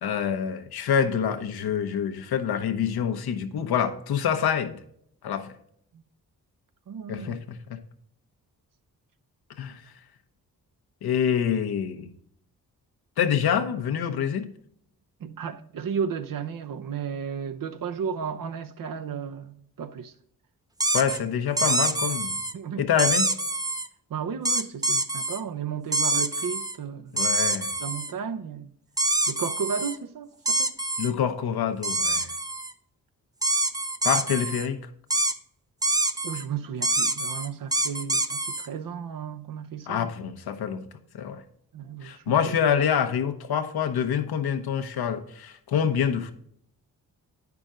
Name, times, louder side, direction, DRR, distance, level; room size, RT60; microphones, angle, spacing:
voice 1, 0.0-4.8 5.2-5.5 7.1-7.8 9.6-9.9 11.0-12.1 13.2-14.5 20.9-22.4 22.8-23.3 27.1-27.7 31.0-32.3 34.0-34.8 39.9-40.9 41.1-41.4 42.0-46.3, left 8 dB, 80° left, 1.0 m, -26 dB
voice 2, 6.9-7.4 15.2-20.1 22.5-22.9 24.1-27.2 27.8-28.7 29.3-30.7 36.2-40.1 41.7-42.5, right 7 dB, 60° right, 0.7 m, -34 dB
sound 1, 20.8-21.2 21.6-22.5 23.0-23.9 24.4-25.4 25.9-26.8 27.2-28.1 29.0-30.0 30.5-31.1 31.8-32.7 33.4-34.7 35.1-35.3 35.8-36.4 36.8-38.7, right 2 dB, 10° right, 0.6 m, -26 dB
9.0 x 6.0 x 3.7 m
cardioid pair, 60°, 37 cm